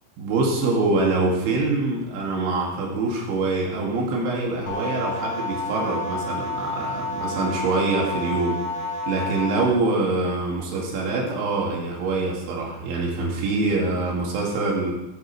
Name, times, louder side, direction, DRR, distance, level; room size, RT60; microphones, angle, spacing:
voice 1, 0.2-8.6 9.1-14.9, right 3 dB, 75° right, -2 dB, 4.4 m, -24 dB
sound 1, 4.7-9.7, left 2 dB, 70° left, 1.8 m, -30 dB
15.5 x 9.0 x 3.2 m, 0.95 s
omnidirectional pair, 5.5 m